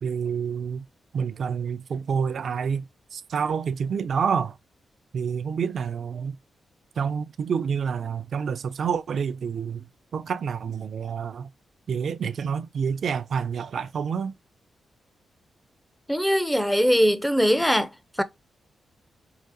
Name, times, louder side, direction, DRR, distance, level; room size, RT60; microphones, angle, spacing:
voice 1, 0.0-0.8 1.1-4.6 5.1-6.4 7.0-9.9 10.1-11.5 11.9-14.3, right 6 dB, 65° right, 0.4 m, -28 dB
voice 2, 16.1-17.9 18.2-18.3, equal, 5° left, 0.5 m, -21 dB
4.7 x 2.0 x 2.6 m
cardioid pair, 80°, 0 cm